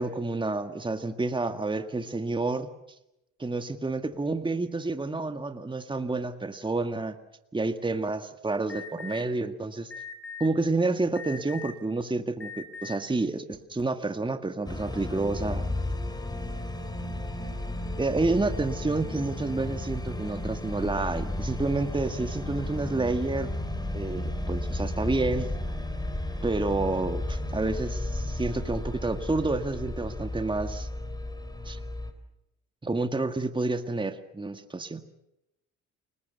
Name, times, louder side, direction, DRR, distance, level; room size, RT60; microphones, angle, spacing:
voice 1, 0.0-2.7 3.4-7.2 7.5-9.9 10.4-15.7 18.0-23.5 23.9-25.5 26.4-30.9 31.7-31.8 32.8-35.0, right 3 dB, 15° right, 8 dB, 1.8 m, -29 dB
Alarm, 8.7-9.2 9.9-10.5 11.2-11.8 12.4-13.0, left 6 dB, 45° left, 4.5 m, -40 dB
sound 1, 14.7-32.1, left 1 dB, 15° left, 3.8 m, -33 dB
29.5 x 20.0 x 6.8 m, 0.85 s
cardioid pair, 90°, 30 cm